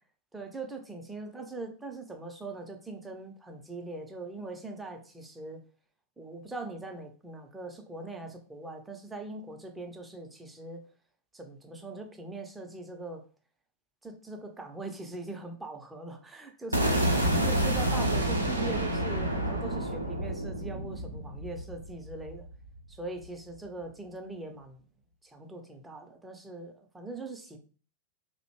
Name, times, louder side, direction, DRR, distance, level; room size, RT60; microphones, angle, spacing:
voice 1, 0.3-5.6 6.2-10.8 11.3-13.2 14.0-22.5 22.9-24.8 25.2-27.6, right 2 dB, 10° right, 4 dB, 0.5 m, -41 dB
sound 1, 16.7-22.8, right 1 dB, 85° right, 0.4 m, -29 dB
2.5 x 2.1 x 2.9 m, 0.39 s
figure-of-eight pair, 90°, 0 cm